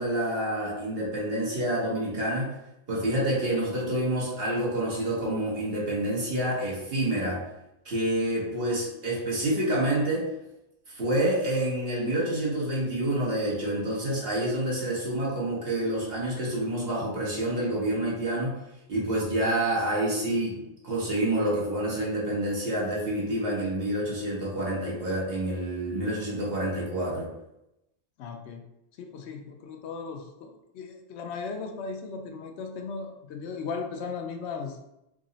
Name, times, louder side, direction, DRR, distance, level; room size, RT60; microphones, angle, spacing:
voice 1, 0.0-2.5 2.9-7.4 7.8-10.2 10.9-18.6 18.9-27.3, right 1 dB, 65° right, -5 dB, 1.3 m, -28 dB
voice 2, 28.2-28.6 29.0-34.8, left 5 dB, 85° left, 4 dB, 0.8 m, -37 dB
3.7 x 2.0 x 3.8 m, 0.86 s
omnidirectional pair, 1.1 m